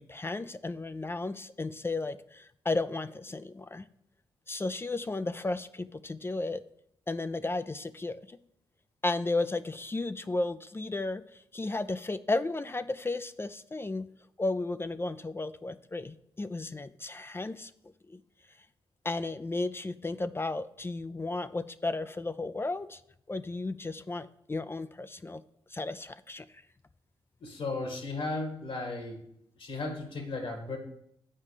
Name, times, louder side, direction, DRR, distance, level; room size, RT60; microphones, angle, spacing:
voice 1, 0.0-3.9 4.5-6.6 7.1-8.4 9.0-14.1 14.4-17.7 18.1-18.2 19.0-23.0 23.3-25.4 25.7-26.5, left 2 dB, 25° left, 13 dB, 0.4 m, -34 dB
voice 2, 27.4-29.2 29.6-30.8, left 3 dB, 65° left, 4 dB, 2.0 m, -35 dB
7.5 x 4.9 x 6.5 m, 0.73 s
supercardioid pair, 45°, 10 cm